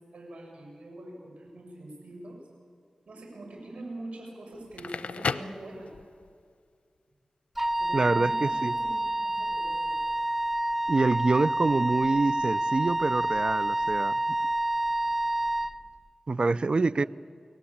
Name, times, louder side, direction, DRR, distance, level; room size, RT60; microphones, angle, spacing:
voice 1, 0.1-2.4 3.1-5.9 7.8-10.0 16.4-17.1, right 1 dB, 85° right, 1 dB, 7.4 m, -44 dB
Crackle, 4.6-6.3, left 5 dB, 85° left, 0.7 m, -34 dB
Wind instrument woodwind instrument, 7.6-15.7, right 1 dB, 10° right, 0.7 m, -28 dB
voice 2, 7.9-8.7 10.9-14.1 16.3-17.0, right 3 dB, 50° right, 18 dB, 0.6 m, -26 dB
29.5 x 18.5 x 8.7 m, 2.1 s
wide cardioid pair, 65°, 2 cm